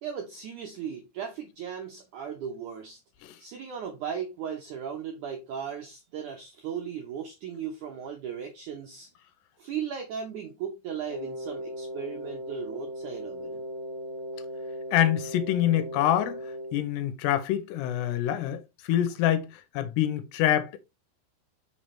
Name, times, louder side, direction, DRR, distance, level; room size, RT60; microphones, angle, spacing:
voice 1, 0.0-3.0 3.4-9.1 9.6-13.6, right 8 dB, 75° right, 1.8 m, -37 dB
Wind instrument woodwind instrument, 11.1-16.8, equal, 30° right, 3.2 m, -37 dB
voice 2, 14.9-20.8, left 11 dB, 80° left, 2.7 m, -26 dB
6.1 x 5.8 x 3.2 m
omnidirectional pair, 5.0 m